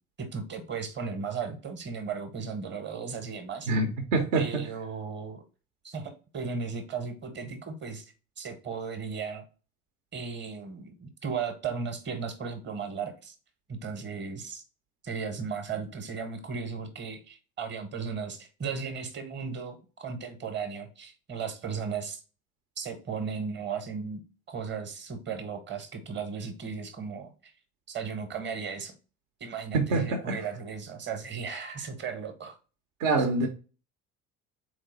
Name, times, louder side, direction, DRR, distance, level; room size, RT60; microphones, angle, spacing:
voice 1, 0.2-3.7 4.3-5.4 5.8-9.4 10.1-13.3 13.7-14.6 15.0-22.2 22.8-24.2 24.5-27.5 27.9-28.9 29.4-32.6, right 5 dB, 25° right, 1.0 m, -36 dB
voice 2, 3.7-4.6 29.7-30.4 33.0-33.5, right 3 dB, 60° right, 0.8 m, -26 dB
4.1 x 3.2 x 3.9 m
figure-of-eight pair, 60°, 41 cm